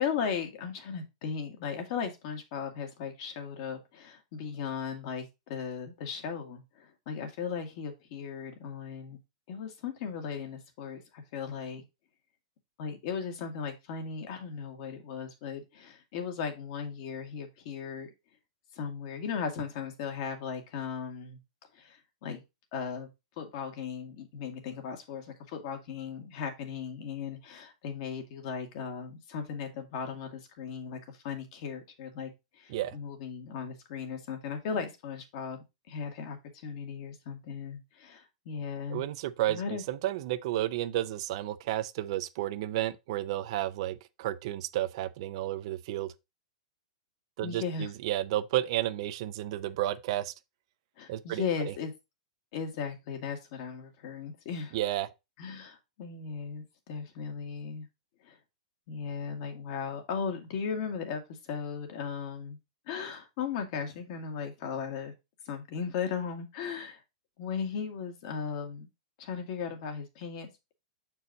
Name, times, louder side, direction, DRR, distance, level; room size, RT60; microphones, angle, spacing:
voice 1, 0.0-9.2 9.5-11.8 12.8-18.1 18.7-21.4 21.7-22.4 22.7-23.1 23.4-39.0 39.5-39.8 47.4-47.9 51.0-51.9 52.5-54.8 55.4-57.9 58.2-58.4 58.9-62.6 62.9-65.1 65.5-67.0 67.4-68.9 69.2-70.7, left 6 dB, 50° left, 1.8 m, -37 dB
voice 2, 38.9-46.1 47.4-50.3 51.1-51.7 54.7-55.1, right 14 dB, 50° right, 0.6 m, -32 dB
6.7 x 4.6 x 3.9 m
hypercardioid pair, 145°, 4 cm